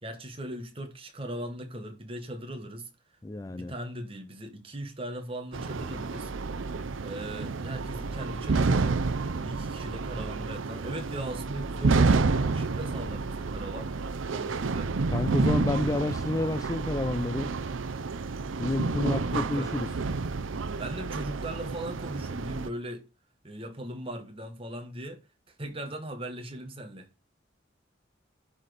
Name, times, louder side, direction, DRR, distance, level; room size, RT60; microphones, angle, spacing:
voice 1, 0.0-2.9 3.5-6.3 7.0-14.9 19.0-19.7 20.5-23.0 23.4-27.1, right 1 dB, 30° right, 1.4 m, -39 dB
voice 2, 3.2-3.7 15.1-17.5 18.6-19.9, left 2 dB, 15° left, 0.4 m, -29 dB
sound 1, 5.5-22.7, right 4 dB, 85° right, 0.6 m, -29 dB
11.5 x 4.2 x 5.0 m
head